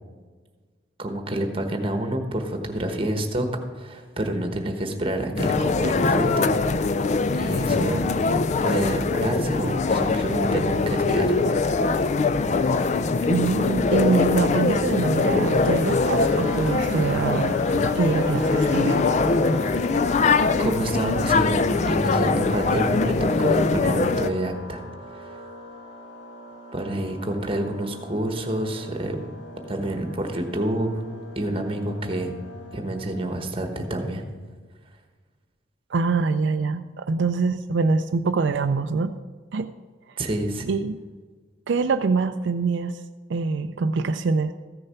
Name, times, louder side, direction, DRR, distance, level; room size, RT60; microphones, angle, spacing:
voice 1, 1.0-3.5 3.7-6.5 7.4-8.1 8.6-11.3 20.6-24.8 25.2-25.3 26.7-29.2 29.7-31.0 31.4-32.3 32.7-34.2 40.2-40.7, right 1 dB, 30° right, 5 dB, 1.2 m, -28 dB
sound 1, 5.4-24.3, left 3 dB, 35° left, 0.3 m, -22 dB
voice 2, 13.3-19.0 35.9-39.1 39.5-39.7 40.7-41.0 41.7-43.0 43.3-44.5, right 4 dB, 65° right, 8 dB, 0.4 m, -24 dB
sound 2, 15.6-33.4, equal, 90° left, 2.5 m, -39 dB
14.5 x 6.6 x 5.7 m, 1.5 s
head